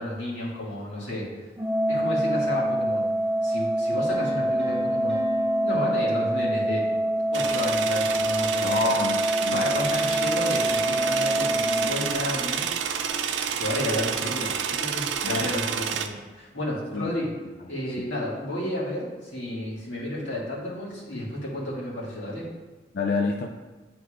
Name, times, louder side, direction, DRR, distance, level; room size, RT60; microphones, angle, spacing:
voice 1, 0.0-1.5 1.9-3.1 3.4-5.2 5.6-6.9 7.3-9.0 9.5-13.2 13.6-17.3 17.7-22.5, left 1 dB, 85° left, -7 dB, 2.2 m, -32 dB
Organ, 1.6-12.6, right 1 dB, 15° right, 0.4 m, -26 dB
Piano, 4.1-7.0, left 4 dB, 5° left, 1.3 m, -39 dB
sound 1, 7.3-16.1, right 7 dB, 90° right, 0.5 m, -29 dB
voice 2, 8.6-9.6 15.2-15.5 16.9-17.1 18.0-18.1 21.1-21.2 22.9-23.5, left 3 dB, 55° left, 2 dB, 0.4 m, -28 dB
10.0 x 4.5 x 2.5 m, 1.2 s
head